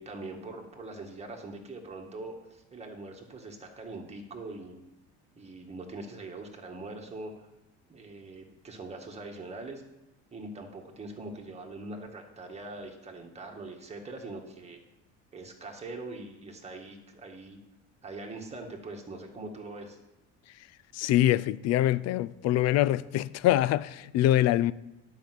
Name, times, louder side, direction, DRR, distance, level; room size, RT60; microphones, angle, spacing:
voice 1, 0.0-4.8 5.4-7.5 7.9-9.8 10.3-14.8 15.3-17.6 18.0-20.0, right 2 dB, 20° right, 2.0 m, -42 dB
voice 2, 20.9-24.7, left 13 dB, 50° left, 0.4 m, -24 dB
10.5 x 5.8 x 7.8 m
cardioid pair, 130°, 34 cm